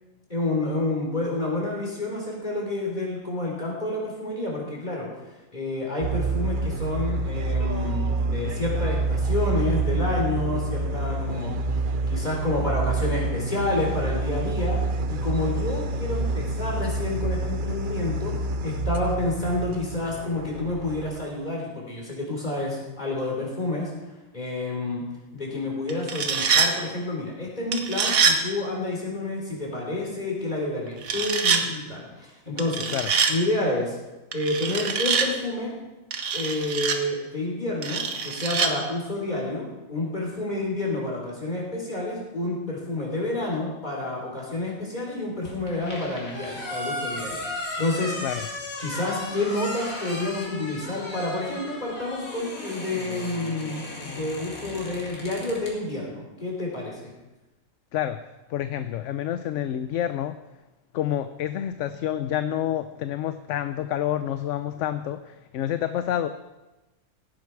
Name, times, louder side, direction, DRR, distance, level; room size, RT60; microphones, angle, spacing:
voice 1, 0.3-5.1 5.5-11.5 12.1-23.9 24.3-25.0 25.3-32.9 33.3-34.0 34.3-35.7 36.3-48.2 48.8-57.1, left 2 dB, 30° left, -2 dB, 3.9 m, -29 dB
sound 1, 6.0-21.3, right 2 dB, 50° right, 0.8 m, -27 dB
sound 2, 25.9-26.7 27.7-28.4 31.0-31.6 32.6-33.3 34.3-35.3 36.1-37.0 37.8-38.7, right 5 dB, 90° right, 1.6 m, -24 dB
sound 3, 45.4-55.7, left 1 dB, 85° left, 3.1 m, -36 dB
voice 2, 58.5-60.4 60.9-66.3, left 11 dB, 70° left, 11 dB, 0.9 m, -28 dB
16.0 x 11.0 x 4.7 m, 1.1 s
omnidirectional pair, 1.4 m